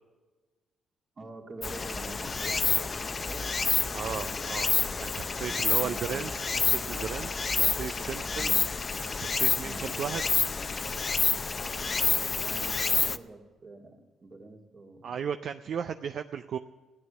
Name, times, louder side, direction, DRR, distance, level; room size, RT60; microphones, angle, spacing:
voice 1, 1.2-2.9 3.2-3.4 5.4-6.2 7.5-7.9 8.4-8.6 9.6-9.9 12.2-15.2 15.7-15.8, right 2 dB, 35° right, 1 dB, 2.4 m, -46 dB
Stream, 1.6-13.2, left 4 dB, 35° left, 0.5 m, -28 dB
voice 2, 3.9-4.7 5.0-8.5 9.1-10.2 15.0-16.6, right 7 dB, 60° right, 9 dB, 0.4 m, -35 dB
14.5 x 9.7 x 6.9 m, 1.3 s
cardioid pair, 90°, 0 cm